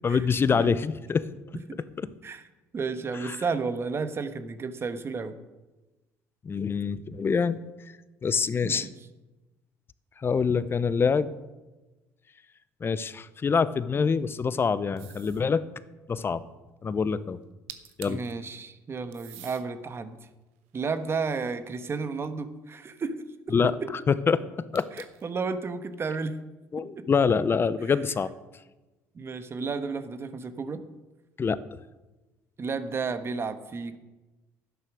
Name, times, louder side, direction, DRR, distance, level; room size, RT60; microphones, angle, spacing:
voice 1, 0.0-1.3 3.2-3.4 6.4-7.6 8.2-8.9 10.2-11.3 12.8-15.6 16.1-16.4 16.8-17.4 18.0-18.2 23.5-23.7 24.3-24.4 24.7-24.9 26.7-28.3 31.4-31.6, left 5 dB, 35° left, 16 dB, 0.8 m, -25 dB
voice 2, 2.7-5.3 8.6-8.9 18.1-20.2 20.7-23.2 23.8-23.9 24.9-26.3 27.0-27.1 29.1-30.8 32.6-34.0, right 4 dB, 35° right, 11 dB, 1.3 m, -32 dB
sound 1, 15.0-15.5 17.4-17.5 17.7-18.3 19.1-19.7 20.3-21.8 24.7-25.3, right 13 dB, 90° right, 1.1 m, -47 dB
12.0 x 9.6 x 6.3 m, 1.1 s
supercardioid pair, 70°, 7 cm